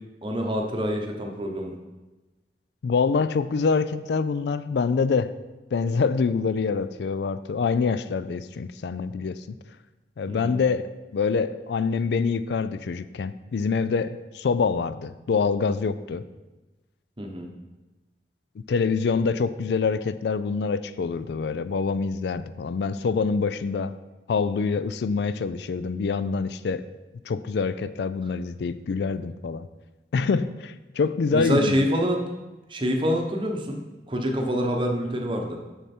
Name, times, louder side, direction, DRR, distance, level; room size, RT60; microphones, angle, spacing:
voice 1, 0.2-1.7 10.3-10.6 17.2-17.5 31.3-32.2 32.7-33.8 34.1-35.6, equal, 25° right, 2 dB, 0.9 m, -26 dB
voice 2, 2.8-5.3 5.7-9.6 10.2-16.3 18.7-24.0 24.3-26.9 27.3-29.7 30.1-31.8, left 5 dB, 65° left, 14 dB, 0.3 m, -25 dB
6.6 x 6.4 x 4.4 m, 1.1 s
head